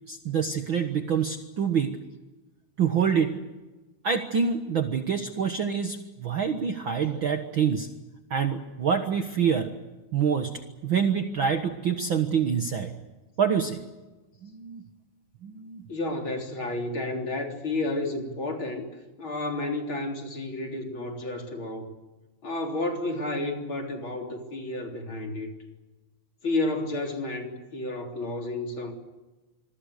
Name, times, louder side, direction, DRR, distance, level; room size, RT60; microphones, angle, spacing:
voice 1, 0.1-2.0 2.8-3.4 4.0-7.9 8.3-9.7 10.1-12.9 13.4-13.8 14.4-14.8 15.4-15.8, right 7 dB, 50° right, 6 dB, 1.7 m, -26 dB
voice 2, 15.9-18.8 19.2-21.9 22.4-25.5 26.4-28.9, left 2 dB, 40° left, 2 dB, 4.2 m, -31 dB
27.0 x 23.5 x 6.6 m, 1.1 s
omnidirectional pair, 3.5 m